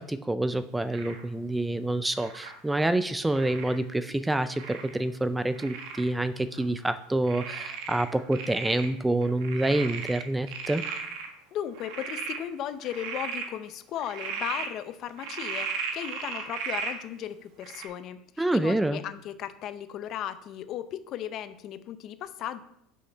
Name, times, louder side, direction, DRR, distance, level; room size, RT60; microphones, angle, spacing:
voice 1, 0.0-10.8 18.4-19.0, right 1 dB, 5° right, 12 dB, 0.3 m, -27 dB
Frog, 0.9-1.2 2.2-2.5 3.3-3.8 4.6-5.0 5.5-6.1 6.5-6.6 7.3-8.9 9.2-11.3 11.7-12.4 12.8-13.5 14.0-14.7 15.2-17.0 17.6-17.9, right 6 dB, 70° right, 1.5 m, -36 dB
voice 2, 11.5-22.6, left 10 dB, 45° left, 12 dB, 0.6 m, -36 dB
6.3 x 5.7 x 5.5 m, 0.75 s
supercardioid pair, 135°, 0 cm